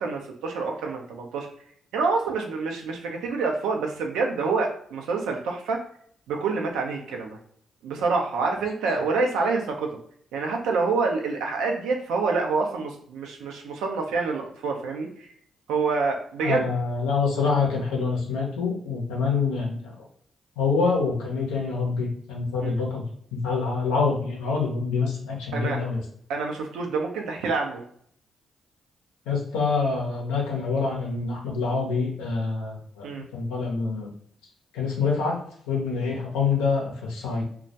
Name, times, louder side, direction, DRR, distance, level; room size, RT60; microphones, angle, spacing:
voice 1, 0.0-1.5 1.9-5.8 6.3-7.4 7.8-9.9 10.3-15.1 15.7-16.7 22.6-22.7 25.5-25.8 26.3-27.8 33.0-33.2, right 4 dB, 80° right, 2 dB, 0.5 m, -27 dB
voice 2, 16.4-19.9 20.6-23.0 23.3-26.0 29.3-33.1 33.3-34.1 34.7-37.4, left 4 dB, 85° left, -1 dB, 0.6 m, -26 dB
2.2 x 2.1 x 2.7 m, 0.63 s
hypercardioid pair, 45°, 0 cm